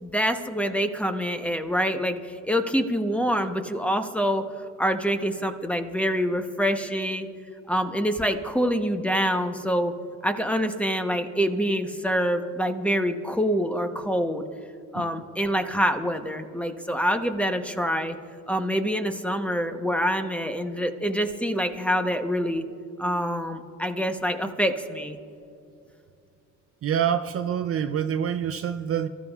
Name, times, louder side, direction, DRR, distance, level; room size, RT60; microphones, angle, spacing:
voice 1, 0.0-4.5 4.8-7.3 7.7-9.9 10.2-14.4 14.9-18.2 18.5-22.6 23.0-25.2, equal, 5° left, 7 dB, 0.9 m, -26 dB
voice 2, 26.8-29.1, right 9 dB, 45° right, 9 dB, 0.5 m, -26 dB
24.0 x 13.5 x 2.4 m, 2.6 s
cardioid pair, 100°, 32 cm